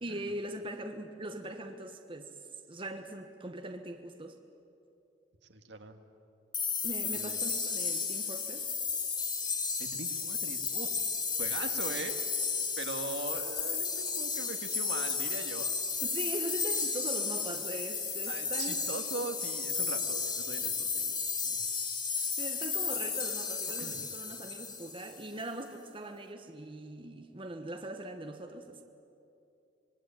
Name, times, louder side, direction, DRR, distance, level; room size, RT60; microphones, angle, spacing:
voice 1, 0.0-2.3 2.7-4.4 6.8-8.7 16.0-18.8 22.1-28.8, right 1 dB, 30° right, 5 dB, 1.3 m, -41 dB
voice 2, 5.5-6.0 7.1-7.4 7.9-8.0 9.8-11.0 11.4-12.2 12.8-15.7 18.3-21.6 23.8-24.1, right 3 dB, 70° right, 6 dB, 1.9 m, -41 dB
sound 1, 6.5-25.2, left 5 dB, 25° left, 2.0 m, -33 dB
25.5 x 21.5 x 9.0 m, 2.7 s
head